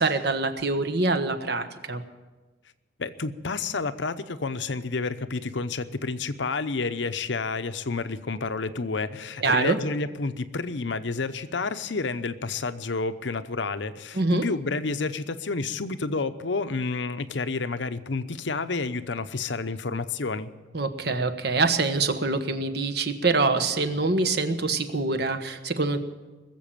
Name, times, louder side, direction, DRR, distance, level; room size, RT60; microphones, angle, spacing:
voice 1, 0.0-2.0 9.4-9.8 14.1-14.4 20.7-26.0, right 3 dB, 55° right, 8 dB, 1.2 m, -25 dB
voice 2, 3.0-20.5, left 3 dB, 70° left, 11 dB, 0.8 m, -30 dB
20.5 x 7.7 x 9.0 m, 1.2 s
head